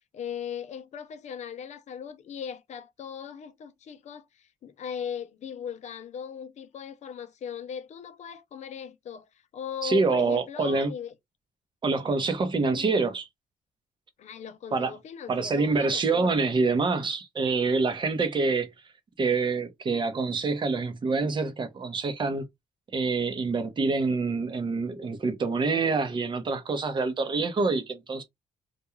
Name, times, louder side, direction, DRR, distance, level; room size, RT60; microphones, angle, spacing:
voice 1, 0.1-9.3 9.5-11.1 12.6-13.0 14.2-16.4, left 7 dB, 55° left, 0.5 m, -38 dB
voice 2, 9.8-10.9 11.8-13.3 14.7-14.9 15.3-18.7 19.2-22.4 22.9-28.2, right 4 dB, 35° right, 0.7 m, -26 dB
2.4 x 2.2 x 2.9 m
cardioid pair, 110°, 14 cm